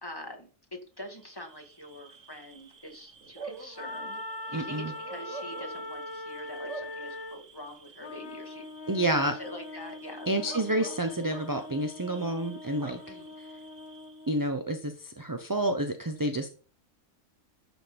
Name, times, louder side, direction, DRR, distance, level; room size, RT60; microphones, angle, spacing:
voice 1, 0.0-4.2 4.5-8.6 9.0-10.4 13.1-13.4, equal, 15° left, 3 dB, 2.2 m, -45 dB
Bark / Cricket, 1.1-14.4, right 4 dB, 60° right, 1.7 m, -48 dB
Wind instrument woodwind instrument, 3.7-7.5, left 2 dB, 40° left, 0.3 m, -39 dB
voice 2, 4.5-4.9 8.9-9.3 10.3-13.1 14.3-16.5, right 1 dB, 20° right, 6 dB, 0.7 m, -29 dB
Trumpet, 8.0-14.5, left 3 dB, 55° left, 1.0 m, -45 dB
11.5 x 6.2 x 5.2 m, 0.40 s
omnidirectional pair, 1.4 m